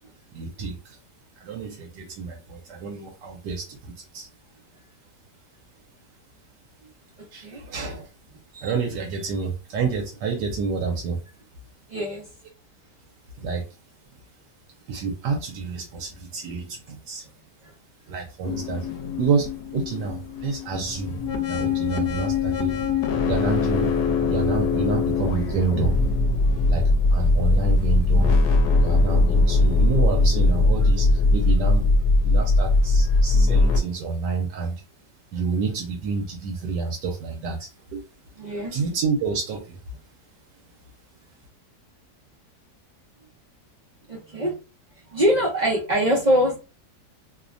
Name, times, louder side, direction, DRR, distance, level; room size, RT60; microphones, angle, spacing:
voice 1, 0.3-1.0 1.4-4.3 7.3-8.1 8.5-11.2 13.4-13.7 14.9-17.2 18.1-18.9 19.2-21.1 21.5-22.7 23.2-23.9 24.2-26.0 26.7-26.8 27.1-28.4 28.8-32.0 32.2-34.7 35.3-38.0 38.7-39.8, right 5 dB, 80° right, 1 dB, 1.2 m, -28 dB
voice 2, 11.9-12.2 17.6-17.7 33.0-33.1 38.4-38.8 44.1-44.5 45.1-46.6, equal, 65° right, -4 dB, 0.4 m, -23 dB
sound 1, 18.4-33.8, left 3 dB, 75° left, 1.2 m, -21 dB
3.0 x 2.1 x 2.5 m, 0.31 s
omnidirectional pair, 1.9 m